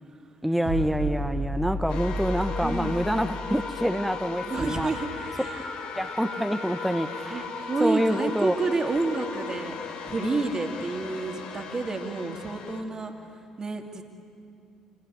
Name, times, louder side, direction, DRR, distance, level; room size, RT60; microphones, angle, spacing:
voice 1, 0.4-4.9 5.9-7.5 7.8-8.5, equal, 5° right, 9 dB, 1.1 m, -27 dB
sound 1, 0.7-4.1, right 1 dB, 55° right, 2.9 m, -32 dB
sound 2, 1.9-12.8, left 5 dB, 65° left, 2.2 m, -37 dB
voice 2, 2.6-3.1 4.4-5.7 7.2-9.7 10.1-14.0, right 3 dB, 35° right, 3 dB, 2.8 m, -30 dB
27.5 x 17.5 x 9.5 m, 2.6 s
hypercardioid pair, 50°, 2 cm